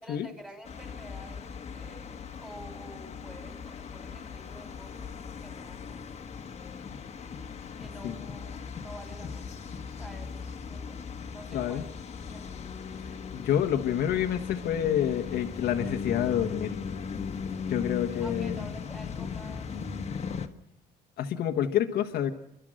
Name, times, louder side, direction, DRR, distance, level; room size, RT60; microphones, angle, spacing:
voice 1, 0.0-5.2 5.4-6.0 7.7-9.6 10.0-11.0 11.3-11.9 12.3-12.6 18.2-19.7, right 1 dB, 5° right, 4 dB, 5.2 m, -49 dB
sound 1, 0.6-20.5, left 6 dB, 40° left, 1.5 m, -38 dB
voice 2, 11.5-11.8 13.0-16.8 17.7-18.6 21.2-22.3, left 10 dB, 70° left, 4 dB, 1.3 m, -28 dB
29.5 x 12.0 x 7.6 m, 0.81 s
cardioid pair, 110°, 17 cm